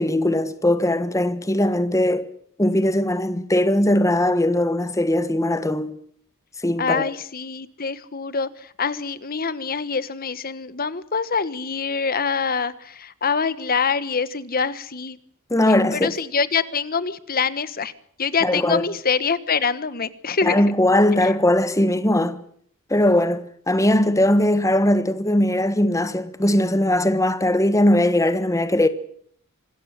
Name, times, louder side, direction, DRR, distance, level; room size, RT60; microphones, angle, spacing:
voice 1, 0.0-2.3 2.6-5.9 6.6-7.1 15.5-16.1 18.4-18.8 20.4-22.4 22.9-28.9, left 1 dB, 15° left, 1.3 m, -20 dB
voice 2, 6.8-15.2 15.9-17.9 18.2-20.6, left 5 dB, 45° left, 1.3 m, -25 dB
26.0 x 13.5 x 9.9 m
head